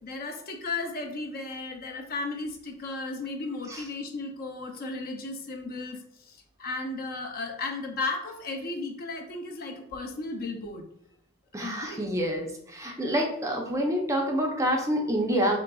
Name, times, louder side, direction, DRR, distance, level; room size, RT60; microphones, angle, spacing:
voice 1, 0.0-10.8 11.6-12.1, left 3 dB, 45° left, 4 dB, 0.5 m, -35 dB
voice 2, 11.5-15.6, equal, 15° right, 1 dB, 0.4 m, -27 dB
3.8 x 3.3 x 2.3 m, 0.70 s
head